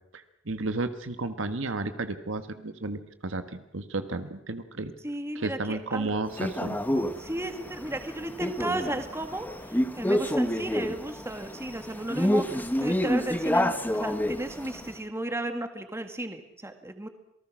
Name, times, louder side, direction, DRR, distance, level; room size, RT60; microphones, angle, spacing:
voice 1, 0.1-4.9 5.3-7.0, right 3 dB, 70° right, 9 dB, 1.4 m, -33 dB
voice 2, 5.0-6.2 7.2-17.1, right 1 dB, 15° right, 7 dB, 1.9 m, -34 dB
Male speech man speaking, 6.4-14.9, equal, 10° left, 1.1 m, -28 dB
27.0 x 19.0 x 6.3 m, 0.81 s
head